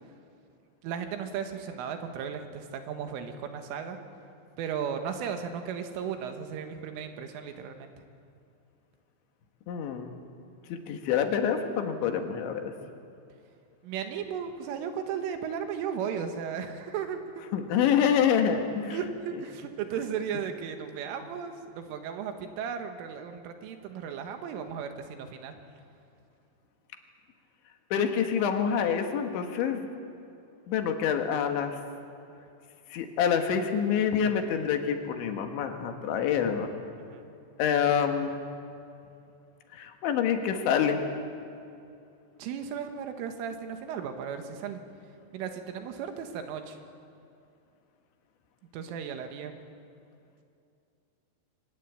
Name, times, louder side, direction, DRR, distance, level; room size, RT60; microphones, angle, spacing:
voice 1, 0.8-4.0 4.6-7.9 13.8-17.2 18.9-25.5 37.0-37.3 42.4-44.8 45.3-46.8 48.7-49.6, right 7 dB, 90° right, 6 dB, 4.0 m, -35 dB
voice 2, 9.7-10.1 10.7-12.7 17.5-19.0 27.9-29.9 30.7-31.8 32.9-36.7 37.6-38.4 39.7-41.0, left 7 dB, 70° left, 5 dB, 3.7 m, -27 dB
24.0 x 19.5 x 8.6 m, 2.6 s
omnidirectional pair, 5.6 m